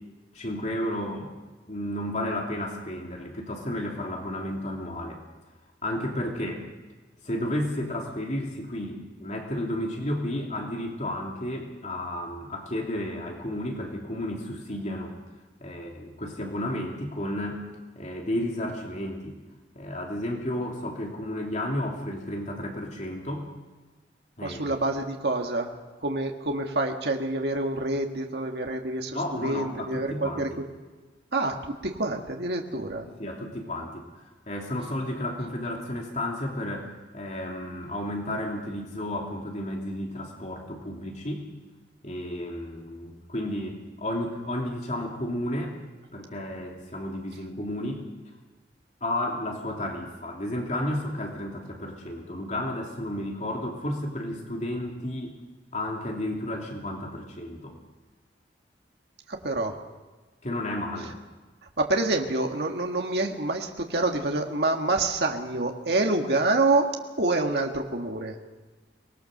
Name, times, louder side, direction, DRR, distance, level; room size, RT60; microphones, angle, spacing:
voice 1, 0.3-1.3 1.7-5.2 5.8-6.7 7.2-15.1 15.6-17.6 17.9-19.4 19.7-23.5 24.4-24.7 29.1-30.4 32.7-41.5 42.0-45.7 46.1-48.1 49.0-55.4 55.7-57.7 60.4-61.1, left 1 dB, 40° left, 0 dB, 3.1 m, -32 dB
voice 2, 24.4-25.7 26.0-30.7 31.3-33.1 59.3-59.8 61.0-61.1 61.8-66.9 67.2-68.4, right 2 dB, 65° right, 2 dB, 1.9 m, -27 dB
24.5 x 20.5 x 6.7 m, 1.2 s
head